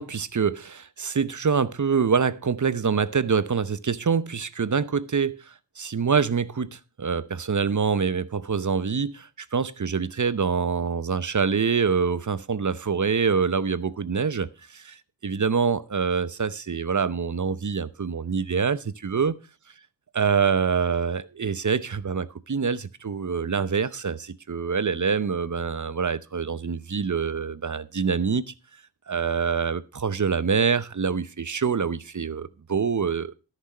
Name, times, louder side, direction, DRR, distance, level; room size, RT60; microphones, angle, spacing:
voice 1, 0.0-15.0 15.2-19.4 20.1-28.4 29.1-33.3, right 6 dB, 45° right, 0.8 m, -25 dB
13.5 x 6.2 x 5.5 m
cardioid pair, 45°, 41 cm